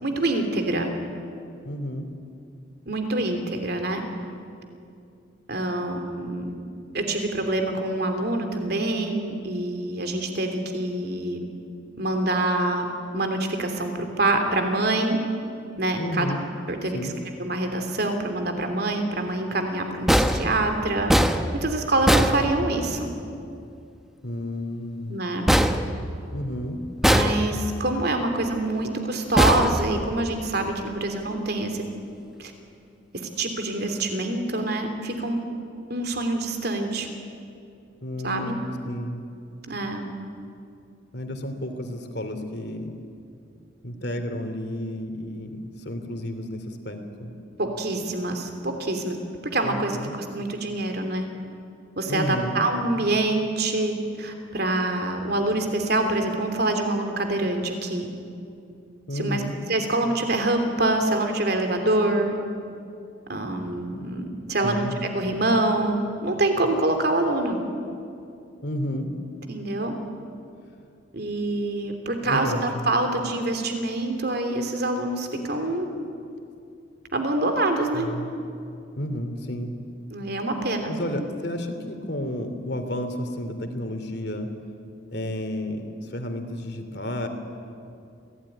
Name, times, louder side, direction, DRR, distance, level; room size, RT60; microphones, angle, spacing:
voice 1, 0.0-0.9 2.9-4.0 5.5-6.5 6.9-11.4 12.0-12.9 13.1-15.2 15.8-16.3 16.7-17.1 17.4-21.1 21.5-23.1 25.1-25.5 27.0-31.8 32.4-32.5 33.1-35.4 35.9-37.1 38.2-38.6 39.7-40.1 47.6-49.2 49.5-51.3 52.0-58.1 59.1-59.4 59.7-62.4 63.3-64.8 65.1-67.6 69.5-69.9 71.1-75.9 77.1-78.1 80.1-80.9, right 2 dB, 55° right, 5 dB, 3.1 m, -25 dB
voice 2, 1.6-2.1 16.0-16.4 16.9-17.1 24.2-25.2 26.3-26.8 38.0-39.2 41.1-42.9 43.8-47.3 49.6-50.1 52.1-52.7 59.1-59.5 64.6-65.0 68.6-69.1 72.2-72.9 77.9-78.3 79.0-79.7 80.9-84.5 85.1-87.3, left 1 dB, 60° left, 6 dB, 2.8 m, -31 dB
sound 1, 20.1-23.1 25.5-26.6 27.0-27.9 29.4-30.5, equal, ahead, 0.9 m, -22 dB
26.5 x 17.0 x 9.9 m, 2.5 s
head